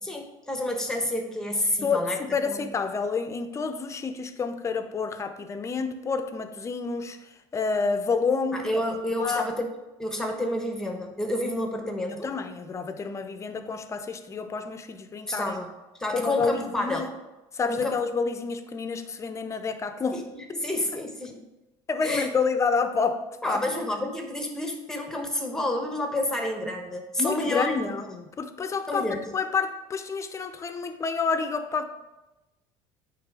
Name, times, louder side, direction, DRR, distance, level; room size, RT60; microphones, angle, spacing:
voice 1, 0.0-2.2 2.5-2.7 8.5-9.6 10.0-12.3 15.3-15.7 16.0-17.1 17.7-18.0 20.1-21.3 22.0-22.3 23.4-27.9 28.9-29.3, left 1 dB, 5° left, 3 dB, 1.1 m, -29 dB
voice 2, 1.8-7.2 7.5-8.7 9.2-9.5 12.2-15.6 16.1-17.1 17.5-20.2 21.9-23.6 27.2-31.8, left 5 dB, 25° left, 8 dB, 0.6 m, -29 dB
8.8 x 3.2 x 4.8 m, 1.0 s
supercardioid pair, 110°, 11 cm